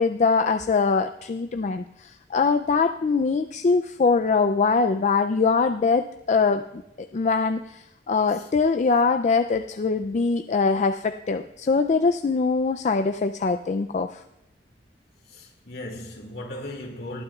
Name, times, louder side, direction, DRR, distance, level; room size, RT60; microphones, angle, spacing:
voice 1, 0.0-14.2, left 4 dB, 40° left, 0.4 m, -23 dB
voice 2, 15.3-17.2, left 1 dB, 60° left, 2.3 m, -38 dB
19.5 x 11.5 x 2.4 m
head